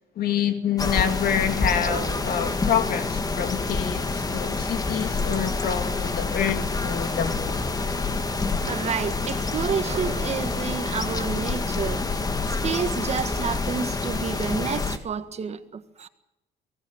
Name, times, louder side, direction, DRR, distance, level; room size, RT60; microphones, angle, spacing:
voice 1, 0.2-7.6, left 9 dB, 60° left, 2.5 m, -27 dB
sound 1, 0.8-15.0, left 3 dB, 20° left, 1.9 m, -27 dB
voice 2, 8.6-12.0 12.5-16.1, right 6 dB, 40° right, 1.7 m, -30 dB
23.5 x 18.0 x 7.3 m
cardioid pair, 110°, 17 cm